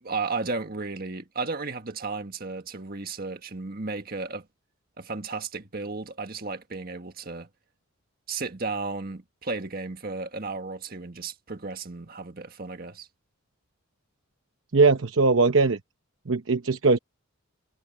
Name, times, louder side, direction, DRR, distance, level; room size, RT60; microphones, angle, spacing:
voice 1, 0.0-4.5 5.0-7.5 8.3-13.1, right 3 dB, 45° right, 1.7 m, -34 dB
voice 2, 14.7-15.8 16.3-17.0, right 3 dB, 60° right, 0.9 m, -20 dB
head